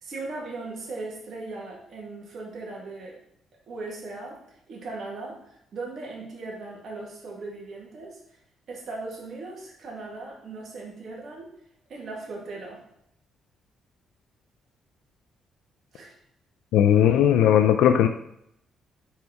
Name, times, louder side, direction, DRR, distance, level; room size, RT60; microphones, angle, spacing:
voice 1, 0.0-3.2 3.7-4.4 4.7-8.2 8.7-11.5 11.9-12.8 15.9-16.1, right 3 dB, 60° right, -3 dB, 2.0 m, -38 dB
voice 2, 16.7-18.1, left 10 dB, 90° left, 7 dB, 0.4 m, -18 dB
4.7 x 4.4 x 5.8 m, 0.73 s
cardioid pair, 90°, 0 cm